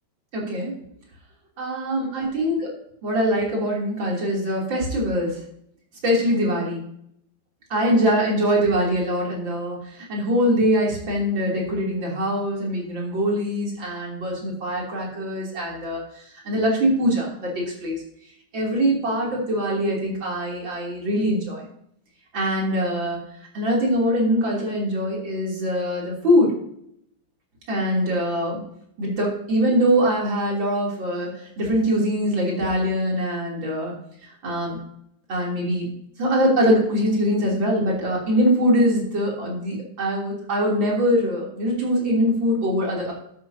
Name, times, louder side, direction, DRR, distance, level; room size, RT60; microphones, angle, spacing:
voice 1, 0.3-0.8 1.6-2.6 3.0-5.4 6.0-6.8 7.7-16.0 16.5-17.5 17.8-18.0 18.5-21.6 22.3-23.2 23.5-26.5 27.7-28.6 29.0-31.3 31.6-33.9 34.4-34.8 35.3-35.9 36.2-43.1, equal, 60° right, -3 dB, 4.0 m, -23 dB
12.0 x 10.5 x 2.8 m, 0.72 s
omnidirectional pair, 2.3 m